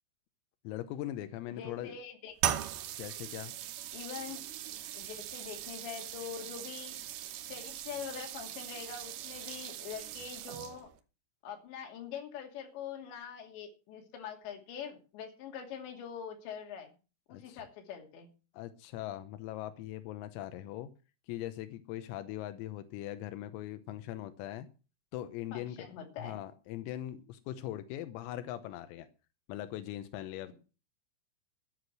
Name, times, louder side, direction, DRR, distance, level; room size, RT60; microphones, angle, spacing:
voice 1, 0.7-1.9 3.0-3.5 17.3-17.6 18.5-20.9 21.3-24.7 25.1-25.9 26.2-29.1 29.5-30.5, left 13 dB, 90° left, 10 dB, 3.7 m, -40 dB
voice 2, 1.5-2.4 3.9-4.5 4.9-7.0 7.5-10.9 11.4-16.9 17.3-18.3 25.5-26.4, left 7 dB, 65° left, 3 dB, 4.7 m, -44 dB
sound 1, 2.4-11.0, right 12 dB, 80° right, 2.3 m, -39 dB
13.0 x 10.5 x 6.1 m, 0.34 s
omnidirectional pair, 5.9 m